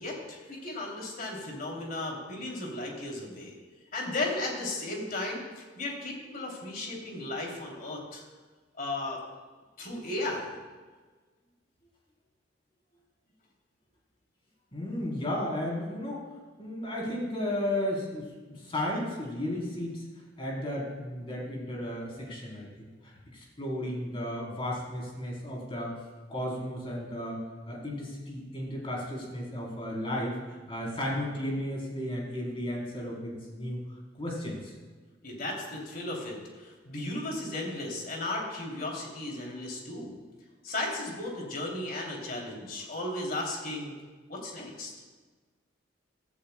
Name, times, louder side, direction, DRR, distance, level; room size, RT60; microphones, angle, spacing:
voice 1, 0.0-3.6 3.9-8.2 8.8-9.2 9.8-10.5 35.2-40.1 40.6-43.9 44.3-44.9, left 2 dB, 50° left, -1 dB, 2.8 m, -35 dB
voice 2, 14.7-16.2 16.6-20.0 20.4-26.0 26.3-27.4 27.7-30.4 30.7-33.8 34.1-34.7, left 1 dB, 30° left, -3 dB, 3.5 m, -34 dB
16.0 x 14.0 x 2.2 m, 1.4 s
head